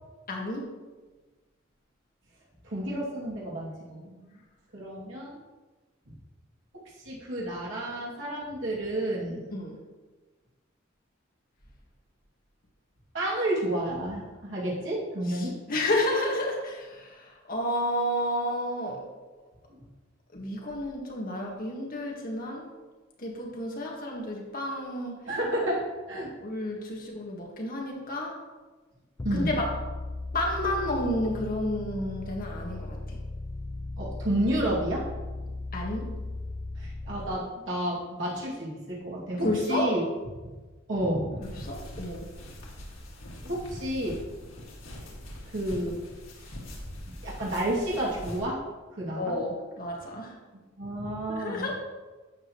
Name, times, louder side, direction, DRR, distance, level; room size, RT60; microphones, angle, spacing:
voice 1, 0.3-0.7 9.5-9.8 15.3-19.0 20.3-22.7 23.2-25.2 26.4-28.3 29.3-29.7 30.3-33.2 35.7-36.1 39.4-39.9 41.6-42.3 49.1-50.3 51.3-51.8, left 1 dB, 45° left, -1 dB, 1.7 m, -31 dB
voice 2, 2.6-4.4 4.7-5.4 7.0-9.4 13.1-15.5 25.3-25.8 26.1-26.3 29.2-29.5 34.0-35.0 36.8-40.0 40.9-41.4 43.4-44.2 45.5-46.0 47.2-48.6 49.0-49.3 50.8-51.7, right 1 dB, 65° right, -6 dB, 2.6 m, -30 dB
sound 1, 29.2-37.4, left 2 dB, 20° left, 0.3 m, -37 dB
sound 2, 41.4-48.4, left 1 dB, 90° left, 2.2 m, -42 dB
12.0 x 8.0 x 3.1 m, 1.3 s
head